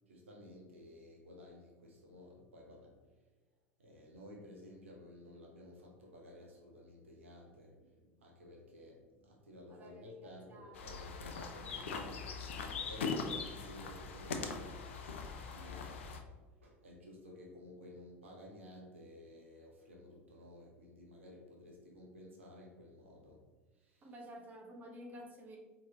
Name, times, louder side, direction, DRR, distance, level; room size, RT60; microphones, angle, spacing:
voice 1, 0.1-2.9 3.8-16.3 16.6-23.4 23.8-24.1, left 1 dB, 70° right, 0 dB, 1.0 m, -54 dB
voice 2, 9.7-11.0 24.0-25.6, equal, 25° right, 1 dB, 0.9 m, -52 dB
sound 1, 10.7-16.2, left 4 dB, 65° left, 0.5 m, -41 dB
4.5 x 3.8 x 2.8 m, 1.3 s
figure-of-eight pair, 75°, 7 cm